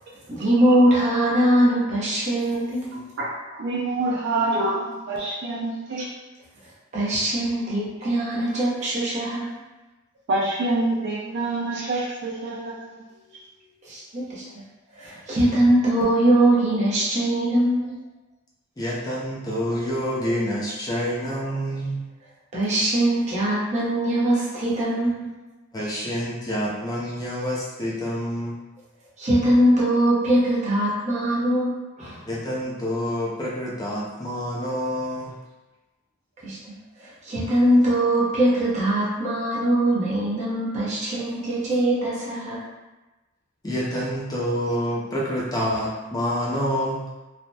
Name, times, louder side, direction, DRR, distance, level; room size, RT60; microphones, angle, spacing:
voice 1, 0.3-3.0 6.9-9.6 13.8-14.4 14.9-18.0 22.5-25.3 29.2-32.2 36.4-36.7 37.0-42.6, right 1 dB, 30° right, -7 dB, 0.7 m, -22 dB
voice 2, 3.2-6.1 10.3-13.1, right 2 dB, 50° right, -3 dB, 0.3 m, -26 dB
voice 3, 18.8-22.0 25.7-28.5 32.3-35.3 43.6-47.1, equal, 15° left, -6 dB, 0.4 m, -27 dB
3.2 x 2.1 x 2.6 m, 1.1 s
head